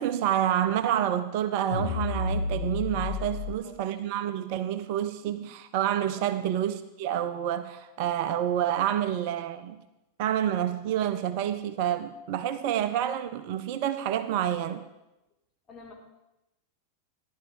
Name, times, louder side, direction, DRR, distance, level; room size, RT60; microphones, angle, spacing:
voice 1, 0.0-9.8 10.2-14.8, right 10 dB, 45° right, 0.5 m, -28 dB
sound 1, 1.7-3.5, left 4 dB, 70° left, 1.2 m, -31 dB
voice 2, 3.2-3.4 3.6-3.8 6.1-6.3 15.7-15.9, left 6 dB, 25° left, 2.5 m, -48 dB
14.0 x 11.0 x 3.8 m
figure-of-eight pair, 90°, 0 cm